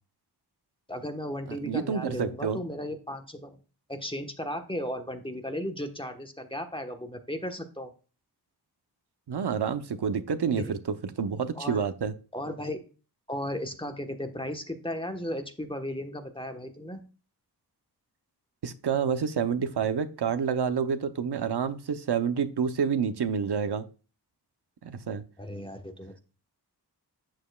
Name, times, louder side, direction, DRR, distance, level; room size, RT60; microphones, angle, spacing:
voice 1, 0.9-3.6 3.9-7.9 10.6-10.7 11.5-11.8 12.3-12.8 13.3-17.0 25.4-26.2, equal, 15° left, 5 dB, 1.2 m, -35 dB
voice 2, 1.5-2.6 9.3-12.1 18.6-23.8 24.8-25.2, right 6 dB, 80° right, 10 dB, 0.8 m, -28 dB
8.9 x 7.4 x 2.3 m, 0.34 s
wide cardioid pair, 90°, 40 cm